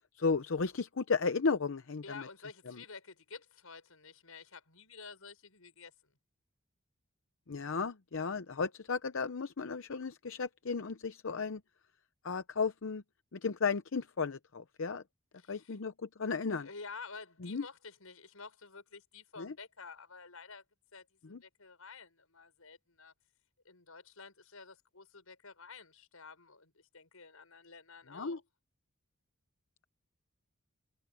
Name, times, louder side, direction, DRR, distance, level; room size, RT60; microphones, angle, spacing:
voice 1, 0.2-2.3 2.7-2.8 7.5-11.6 12.2-13.0 13.3-15.0 15.5-16.7 17.4-17.6 19.4-19.5 21.3-21.4 28.1-28.4, left 4 dB, 65° left, 0.7 m, -34 dB
voice 2, 2.0-6.1 15.4-15.8 16.6-20.6 20.9-23.1 23.6-28.4, left 4 dB, 90° left, 6.2 m, -51 dB
head